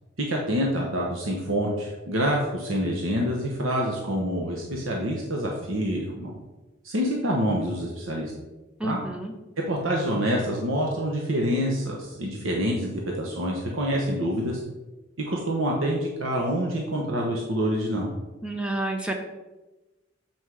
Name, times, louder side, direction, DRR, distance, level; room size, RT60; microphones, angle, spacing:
voice 1, 0.2-6.3 6.8-8.3 8.8-9.0 9.7-14.6 15.2-18.1, equal, 85° right, -1 dB, 1.1 m, -26 dB
voice 2, 8.8-9.3 18.4-19.1, right 1 dB, 5° right, 3 dB, 0.8 m, -29 dB
7.9 x 4.5 x 4.8 m, 1.1 s
head